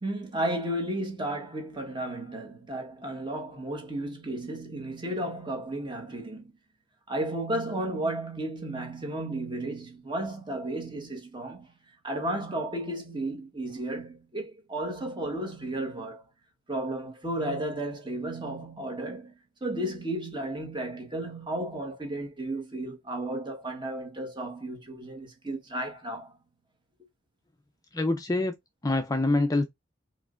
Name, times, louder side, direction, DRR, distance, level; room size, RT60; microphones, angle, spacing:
voice 1, 0.0-6.5 7.1-11.7 12.0-16.2 16.7-26.3, right 1 dB, 25° right, 1.4 m, -33 dB
voice 2, 27.9-28.6 28.8-29.7, left 2 dB, 20° left, 0.5 m, -25 dB
4.6 x 3.2 x 2.5 m
head